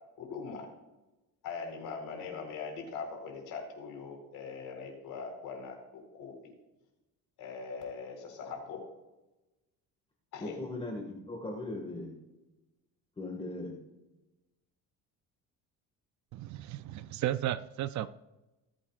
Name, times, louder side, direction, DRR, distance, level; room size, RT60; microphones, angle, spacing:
voice 1, 0.2-0.7 1.4-6.3 7.4-8.8 10.3-10.6, left 5 dB, 80° left, 1 dB, 4.3 m, -41 dB
voice 2, 10.4-12.1 13.2-13.7, left 2 dB, 15° left, 0 dB, 1.8 m, -38 dB
voice 3, 16.3-18.1, right 12 dB, 60° right, 14 dB, 0.5 m, -34 dB
19.5 x 8.6 x 2.4 m, 1.0 s
cardioid pair, 140°, 33 cm